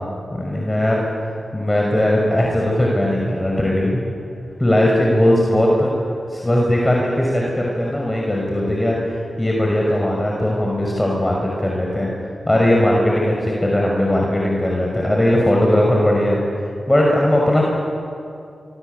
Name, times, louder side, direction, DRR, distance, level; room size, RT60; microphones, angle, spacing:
voice 1, 0.3-4.0 4.6-5.9 6.3-12.1 12.5-16.4 16.9-17.6, left 1 dB, 20° left, -2 dB, 6.0 m, -18 dB
26.0 x 24.0 x 8.2 m, 2.5 s
cardioid pair, 45°, 0 cm